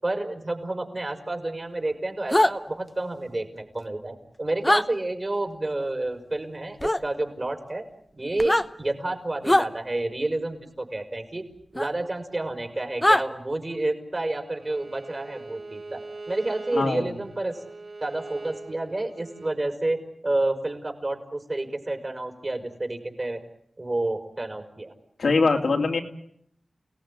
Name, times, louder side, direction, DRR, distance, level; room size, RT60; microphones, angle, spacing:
voice 1, 0.0-7.8 8.2-11.4 11.7-16.0 16.3-17.6 18.0-20.0 20.2-23.4 23.8-24.9, right 2 dB, 30° right, 5 dB, 5.1 m, -29 dB
sound 1, 2.3-2.5 4.6-4.8 6.8-7.0 8.3-8.7 9.4-9.7 11.8-11.9 13.0-13.2, left 1 dB, 15° left, 1.1 m, -20 dB
Bowed string instrument, 14.6-19.6, right 3 dB, 60° right, 2.1 m, -41 dB
voice 2, 16.7-17.1 25.2-26.0, left 3 dB, 75° left, 2 dB, 3.2 m, -22 dB
29.5 x 19.0 x 10.0 m, 0.74 s
wide cardioid pair, 90°, 0 cm